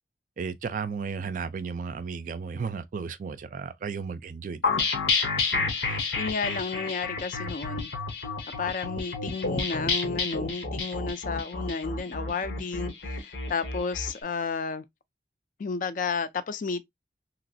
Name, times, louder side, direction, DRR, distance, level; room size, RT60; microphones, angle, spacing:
voice 1, 0.4-4.9, right 5 dB, 45° right, 0.3 m, -34 dB
sound 1, 4.6-14.1, left 4 dB, 90° left, 1.0 m, -30 dB
voice 2, 5.5-7.9 8.6-14.8 15.6-16.8, left 5 dB, 45° left, 0.4 m, -32 dB
3.0 x 2.9 x 2.6 m
head